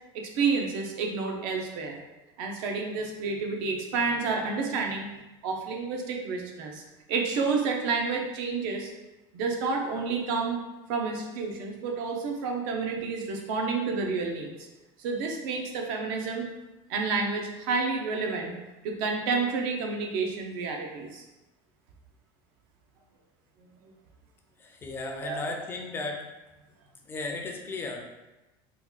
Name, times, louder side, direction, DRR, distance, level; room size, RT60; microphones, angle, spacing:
voice 1, 0.1-2.0 2.4-5.1 5.4-6.8 7.1-8.9 9.3-10.6 10.9-14.5 15.0-16.5 16.9-18.5 18.8-21.2 25.1-25.4, right 4 dB, 70° right, 2 dB, 0.6 m, -29 dB
voice 2, 24.6-26.2 27.1-28.0, left 3 dB, 20° left, 2 dB, 0.4 m, -35 dB
2.9 x 2.3 x 3.7 m, 1.0 s
cardioid pair, 155°, 12 cm